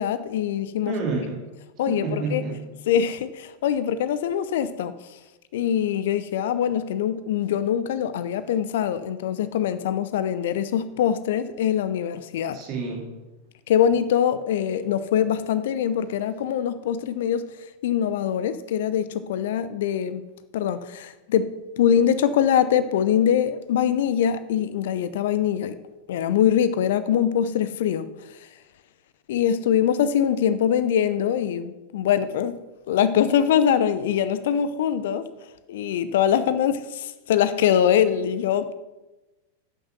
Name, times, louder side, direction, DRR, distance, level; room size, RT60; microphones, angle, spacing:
voice 1, 0.0-0.9 1.8-2.4 2.9-4.9 5.5-12.6 13.7-17.4 17.8-20.2 20.5-25.8 26.1-28.1 29.3-32.6 32.9-35.3 35.7-38.7, left 9 dB, 55° left, 0.7 m, -23 dB
voice 2, 0.8-1.4 1.9-2.6 12.5-13.1, right 3 dB, 40° right, 2.6 m, -29 dB
11.0 x 6.8 x 6.0 m
figure-of-eight pair, 90°, 0 cm